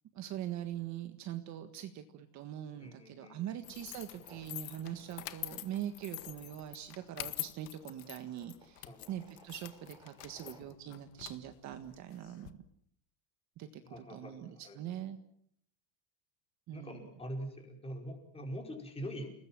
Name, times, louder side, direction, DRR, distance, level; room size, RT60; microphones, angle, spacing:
voice 1, 0.1-12.5 13.6-15.2 16.7-17.0, right 11 dB, 35° right, 8 dB, 1.7 m, -42 dB
voice 2, 2.8-3.6 8.9-9.1 13.8-14.8 16.7-19.4, equal, 10° left, 2 dB, 5.5 m, -44 dB
sound 1, 3.6-12.5, left 19 dB, 80° left, 1.9 m, -46 dB
sound 2, 4.2-10.6, right 2 dB, 10° right, 5.0 m, -61 dB
29.5 x 20.0 x 7.7 m, 0.70 s
cardioid pair, 170°, 47 cm